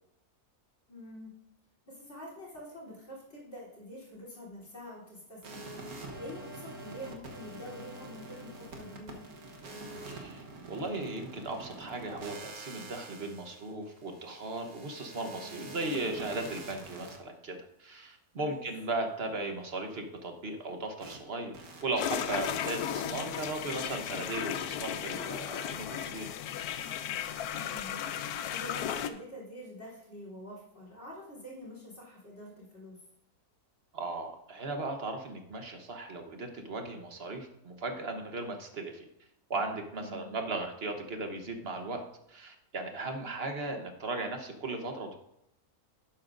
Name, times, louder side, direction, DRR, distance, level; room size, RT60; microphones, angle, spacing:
voice 1, 0.9-1.4 1.9-9.3 18.4-18.6 27.5-33.0 39.9-40.4, left 1 dB, 45° left, -5 dB, 3.8 m, -46 dB
sound 1, 5.4-17.2 21.0-21.2 21.5-21.8, right 2 dB, 75° right, 1.7 m, -45 dB
voice 2, 10.1-26.3 33.9-39.1 39.5-45.1, right 2 dB, 45° right, 4 dB, 1.2 m, -37 dB
sound 2, 22.0-29.1, left 9 dB, 85° left, 1.1 m, -35 dB
11.5 x 8.8 x 2.6 m, 0.80 s
omnidirectional pair, 1.6 m